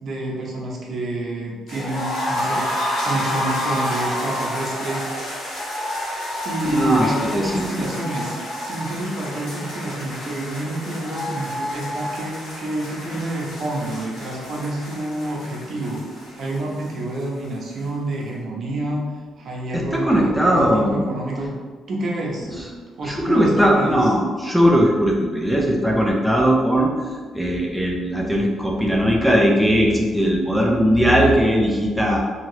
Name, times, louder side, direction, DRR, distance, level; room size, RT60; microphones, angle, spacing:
voice 1, 0.0-2.7 3.0-5.1 6.4-8.3 8.6-16.0 16.3-19.1 19.4-21.5 21.9-22.5 23.0-24.0, right 1 dB, 55° right, -2 dB, 0.7 m, -28 dB
sound 1, 1.7-17.5 17.8-17.9 18.2-18.3, left 1 dB, 80° left, 1.2 m, -29 dB
voice 2, 6.6-7.9 19.7-21.1 22.5-22.6 23.0-26.9 27.3-32.2, equal, ahead, -2 dB, 0.5 m, -19 dB
2.9 x 2.9 x 2.7 m, 1.5 s
cardioid pair, 90°, 0 cm